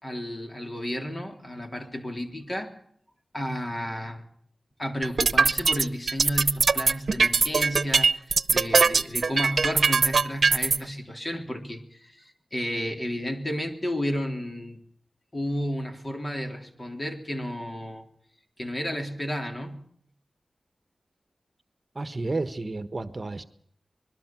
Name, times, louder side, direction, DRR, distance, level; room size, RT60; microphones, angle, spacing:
voice 1, 0.0-2.8 3.3-4.2 4.8-14.8 15.3-18.1 18.6-19.8, equal, 30° left, 4 dB, 3.5 m, -32 dB
sound 1, 5.0-10.8, right 4 dB, 75° right, 0.9 m, -21 dB
voice 2, 21.9-23.4, right 2 dB, 40° right, 10 dB, 1.3 m, -31 dB
26.0 x 21.0 x 6.1 m, 0.64 s
wide cardioid pair, 80°, 0 cm